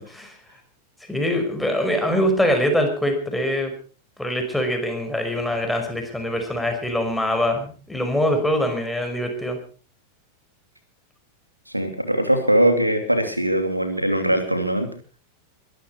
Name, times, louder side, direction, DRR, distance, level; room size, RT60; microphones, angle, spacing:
voice 1, 1.1-3.7 4.2-9.6, equal, 5° left, 4 dB, 5.3 m, -23 dB
voice 2, 11.7-14.9, right 1 dB, 90° right, 7 dB, 2.8 m, -21 dB
23.0 x 13.5 x 4.6 m, 0.39 s
figure-of-eight pair, 90°, 0 cm